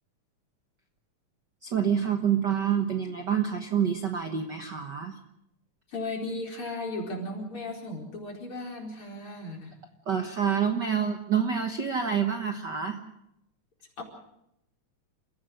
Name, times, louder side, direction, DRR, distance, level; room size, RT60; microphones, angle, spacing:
voice 1, 1.6-5.1 10.1-13.0, right 7 dB, 45° right, 5 dB, 1.5 m, -27 dB
voice 2, 5.9-9.8 14.0-14.1, left 2 dB, 45° left, 0 dB, 5.4 m, -36 dB
29.5 x 16.0 x 6.4 m, 0.81 s
omnidirectional pair, 3.5 m